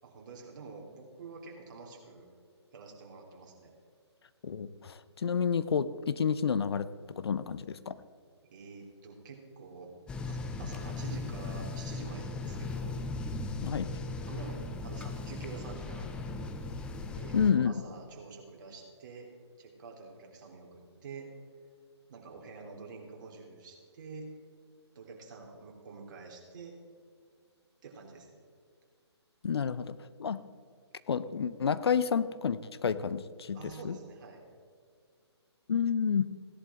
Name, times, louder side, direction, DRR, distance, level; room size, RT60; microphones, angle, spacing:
voice 1, 0.0-2.2 2.7-3.7 8.4-9.9 10.3-13.0 14.3-16.4 17.1-19.3 19.6-21.3 22.1-24.3 24.9-26.7 27.8-28.4 33.5-34.4, right 4 dB, 45° right, 0 dB, 3.3 m, -47 dB
voice 2, 4.4-8.0 13.6-13.9 17.3-17.7 29.4-30.4 31.1-33.6 33.8-34.0 35.7-36.3, left 6 dB, 65° left, 15 dB, 0.7 m, -30 dB
sound 1, 10.1-17.5, left 3 dB, 5° left, 0.4 m, -38 dB
17.0 x 11.0 x 3.7 m, 2.1 s
figure-of-eight pair, 145°, 15 cm